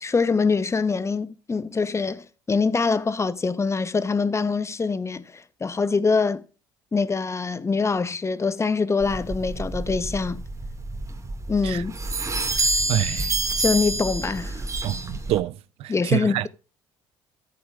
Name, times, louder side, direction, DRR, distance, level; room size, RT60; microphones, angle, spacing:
voice 1, 0.0-5.2 5.6-6.4 6.9-10.4 11.5-11.9 12.5-12.7 13.6-14.6 15.9-16.5, left 4 dB, 25° left, 0.9 m, -24 dB
sound 1, 9.0-15.4, right 2 dB, 30° right, 2.1 m, -28 dB
voice 2, 12.9-13.3 14.8-16.5, right 14 dB, 65° right, 0.5 m, -27 dB
14.0 x 8.8 x 2.4 m
hypercardioid pair, 60°, 11 cm